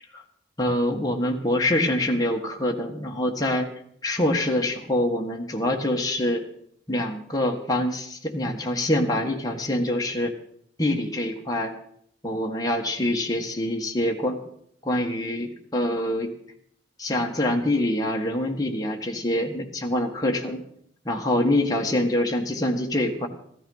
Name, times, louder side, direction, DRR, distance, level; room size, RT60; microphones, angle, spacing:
voice 1, 0.6-3.7 4.0-6.4 6.9-10.3 10.8-11.7 12.2-14.4 14.8-16.3 17.0-20.6 21.0-23.3, left 1 dB, 20° left, 1 dB, 1.6 m, -25 dB
14.5 x 14.0 x 5.6 m, 0.68 s
head